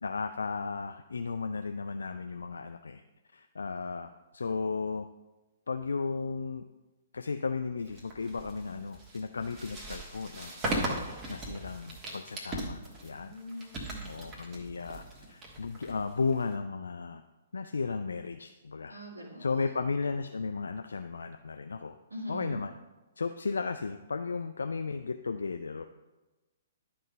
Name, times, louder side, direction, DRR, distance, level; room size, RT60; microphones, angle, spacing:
voice 1, 0.0-3.0 3.3-5.1 5.7-6.6 7.1-13.3 14.0-15.0 15.3-17.2 17.5-18.9 19.4-22.0 22.3-22.7 23.2-25.8, left 4 dB, 65° left, 7 dB, 0.3 m, -35 dB
sound 1, 7.9-16.5, right 1 dB, 20° right, 1.4 m, -38 dB
voice 2, 13.0-14.1 18.9-19.9 22.1-22.6, equal, 75° right, -4 dB, 1.9 m, -43 dB
11.0 x 3.8 x 5.1 m, 1.1 s
figure-of-eight pair, 120°, 0 cm